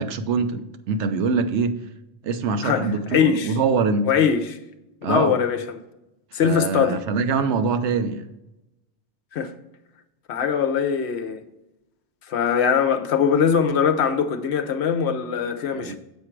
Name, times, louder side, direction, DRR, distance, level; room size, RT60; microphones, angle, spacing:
voice 1, 0.0-1.8 2.2-4.1 5.0-5.4 6.3-8.2 15.7-16.0, right 4 dB, 75° right, 1.0 m, -24 dB
voice 2, 3.1-3.5 4.1-4.6 5.0-5.8 6.3-7.0 9.3-9.5 10.3-11.4 12.3-16.0, left 7 dB, 70° left, 1.0 m, -21 dB
7.4 x 4.9 x 4.5 m
omnidirectional pair, 1.2 m